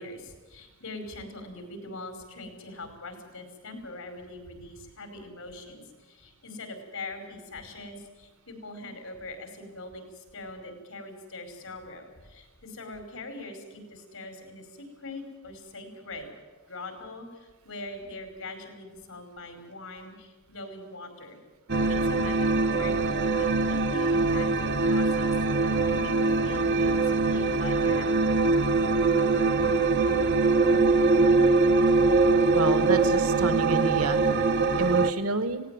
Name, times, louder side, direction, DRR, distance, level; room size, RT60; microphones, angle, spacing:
voice 1, 0.0-16.3 16.7-21.4 21.9-28.8, left 2 dB, 80° left, 6 dB, 5.0 m, -42 dB
sound 1, 21.7-35.1, right 3 dB, 55° right, 1.0 m, -23 dB
voice 2, 32.5-34.2 34.8-35.6, right 2 dB, 85° right, 11 dB, 1.2 m, -28 dB
18.5 x 17.0 x 9.2 m, 1.3 s
head